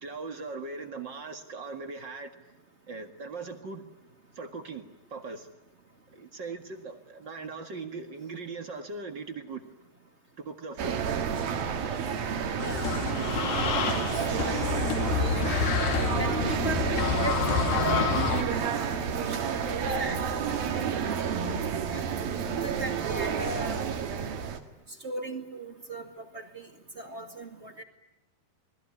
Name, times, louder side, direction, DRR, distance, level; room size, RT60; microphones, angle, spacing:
voice 1, 0.0-2.3 2.9-3.8 4.3-5.5 6.1-9.6 10.4-11.0, right 4 dB, 45° right, 6 dB, 1.5 m, -39 dB
sound 1, 10.8-24.6, right 7 dB, 65° right, 3.6 m, -30 dB
sound 2, 12.6-18.4, left 8 dB, 60° left, 2.7 m, -29 dB
voice 2, 12.6-12.9 13.2-13.8 14.1-14.6 15.1-15.7 16.0-21.4 21.7-22.1 22.6-23.8 25.0-26.7 26.9-27.8, right 2 dB, 25° right, 4 dB, 1.7 m, -39 dB
28.0 x 20.5 x 9.7 m, 0.95 s
omnidirectional pair, 4.6 m